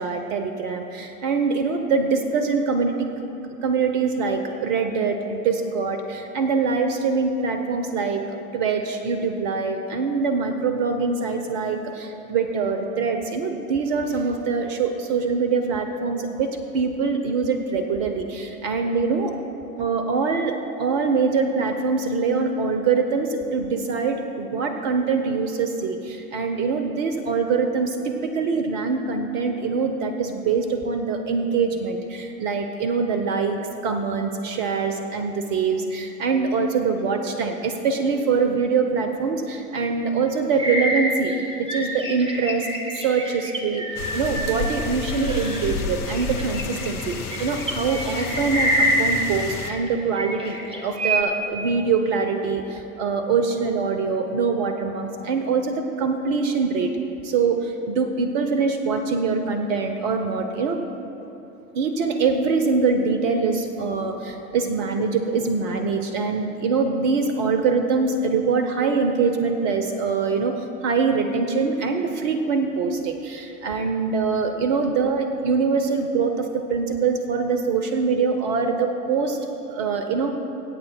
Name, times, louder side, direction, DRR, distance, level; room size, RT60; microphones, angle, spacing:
voice 1, 0.0-3.1 3.6-19.3 19.8-41.3 41.6-42.7 43.0-43.8 44.1-56.9 57.2-60.8 61.7-79.4 79.7-80.4, right 5 dB, 50° right, 6 dB, 0.9 m, -24 dB
sound 1, 40.6-45.7 46.1-49.9 50.1-51.2, right 1 dB, 10° right, 1.8 m, -27 dB
sound 2, 44.0-49.7, left 4 dB, 70° left, 0.9 m, -31 dB
24.5 x 8.7 x 2.3 m, 2.9 s
figure-of-eight pair, 75°, 46 cm